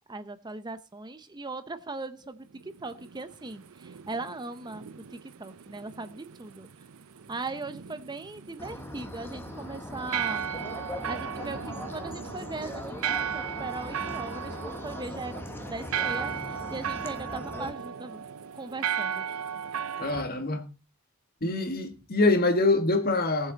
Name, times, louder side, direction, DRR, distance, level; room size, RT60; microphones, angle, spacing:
voice 1, 0.1-6.7 7.3-10.5 10.9-18.3 18.5-19.3, right 3 dB, 20° right, 0.7 m, -39 dB
sound 1, 2.5-20.2, right 8 dB, 90° right, 0.6 m, -36 dB
sound 2, 8.6-17.7, left 1 dB, 10° left, 1.3 m, -40 dB
voice 2, 20.0-20.7 21.4-23.5, left 2 dB, 45° left, 1.8 m, -25 dB
18.5 x 7.4 x 4.0 m
head